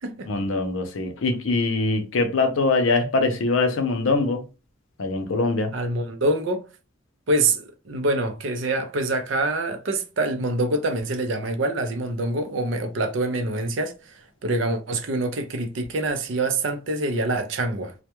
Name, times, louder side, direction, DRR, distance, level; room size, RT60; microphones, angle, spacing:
voice 1, 0.3-4.4 5.0-5.8, left 3 dB, 85° left, 0.6 m, -23 dB
voice 2, 5.7-6.6 7.3-17.9, right 2 dB, 65° right, 0.5 m, -25 dB
2.2 x 2.1 x 2.9 m
head